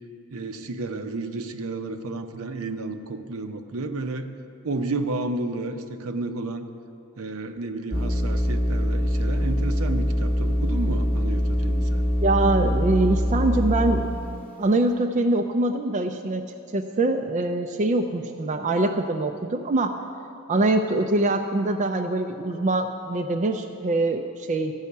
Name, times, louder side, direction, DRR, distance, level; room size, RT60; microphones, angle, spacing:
voice 1, 0.3-4.3 4.6-6.6 7.2-12.1, right 2 dB, 65° right, 8 dB, 0.7 m, -31 dB
sound 1, 7.9-14.4, equal, 5° left, 0.9 m, -24 dB
voice 2, 12.2-14.1 14.6-16.4 16.7-19.9 20.5-24.7, right 2 dB, 35° right, 5 dB, 0.4 m, -23 dB
13.5 x 5.6 x 8.3 m, 2.6 s
head